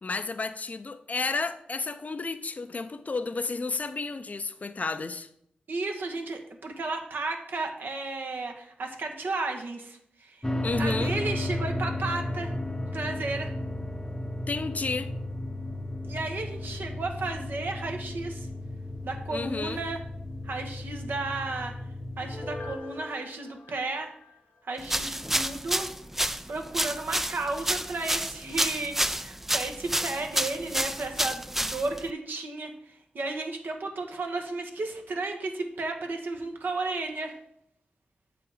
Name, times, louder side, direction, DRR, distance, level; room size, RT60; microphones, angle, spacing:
voice 1, 0.0-5.3 10.6-11.2 14.5-15.1 19.3-19.8, left 3 dB, 45° left, 0.5 m, -31 dB
voice 2, 5.7-10.5 10.8-12.5 12.9-13.5 16.0-18.5 19.0-20.0 20.4-21.7 22.2-24.1 24.6-25.9 26.5-37.3, right 3 dB, 70° right, 1.2 m, -33 dB
sound 1, 10.4-22.8, left 1 dB, 15° left, 0.7 m, -34 dB
Piano, 22.2-24.9 25.3-25.4, left 2 dB, 85° left, 1.5 m, -43 dB
sound 2, 24.8-32.1, right 1 dB, 10° right, 0.4 m, -29 dB
7.2 x 4.9 x 4.9 m
cardioid pair, 45°, 4 cm